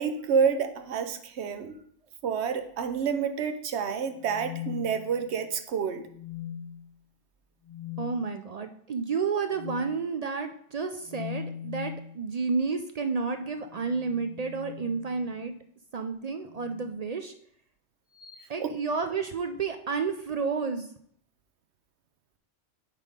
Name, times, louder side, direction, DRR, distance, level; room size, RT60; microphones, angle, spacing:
voice 1, 0.0-1.8 2.2-6.1 18.6-18.7, right 6 dB, 75° right, 8 dB, 1.0 m, -28 dB
sound 1, 4.1-5.4 6.1-6.8 7.6-8.1 9.5-9.9 11.0-12.1 13.6-15.4 16.5-16.9 18.2-18.4, left 9 dB, 45° left, 1.0 m, -40 dB
voice 2, 8.0-15.5 15.9-17.3 18.5-20.9, right 5 dB, 55° right, 7 dB, 0.4 m, -31 dB
7.2 x 4.2 x 5.1 m, 0.64 s
omnidirectional pair, 1.1 m